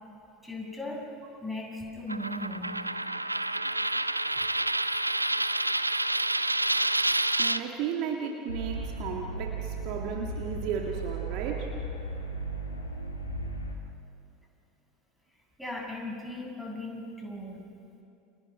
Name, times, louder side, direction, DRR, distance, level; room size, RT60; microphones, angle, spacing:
voice 1, 0.4-1.1 1.4-2.8 15.6-17.7, left 1 dB, ahead, -3 dB, 7.5 m, -37 dB
Coin (dropping), 2.1-7.6, right 2 dB, 90° right, 0.5 m, -28 dB
voice 2, 7.3-11.7, right 7 dB, 50° right, 1 dB, 2.0 m, -34 dB
sound 1, 8.5-13.8, right 2 dB, 85° left, 2.3 m, -36 dB
30.0 x 28.0 x 5.0 m, 2.8 s
figure-of-eight pair, 75°, 0 cm